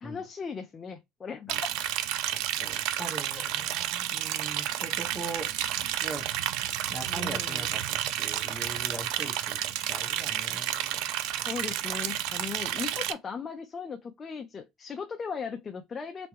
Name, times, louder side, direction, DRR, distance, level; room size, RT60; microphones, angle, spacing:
voice 1, 0.0-1.6 3.3-3.5 7.1-7.7 11.4-16.3, left 5 dB, 30° left, 0.6 m, -38 dB
Liquid, 1.5-13.1, right 12 dB, 75° right, 0.5 m, -31 dB
voice 2, 2.3-5.5 6.0-6.3 6.9-7.8 8.2-11.1, right 2 dB, 20° right, 1.5 m, -41 dB
3.4 x 3.0 x 3.0 m
cardioid pair, 120°, 0 cm